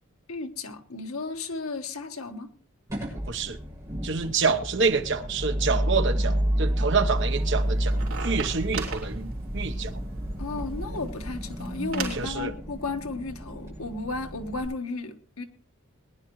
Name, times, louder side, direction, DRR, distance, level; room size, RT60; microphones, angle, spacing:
voice 1, 0.3-2.5 10.4-15.4, left 3 dB, 80° left, 1.4 m, -34 dB
sound 1, 2.9-14.7, right 1 dB, 15° right, 6.5 m, -30 dB
voice 2, 3.3-3.6 4.0-10.0 12.1-12.5, right 4 dB, 55° right, 1.0 m, -27 dB
sound 2, 7.2-12.3, right 3 dB, 70° right, 3.3 m, -38 dB
21.5 x 10.0 x 3.1 m
head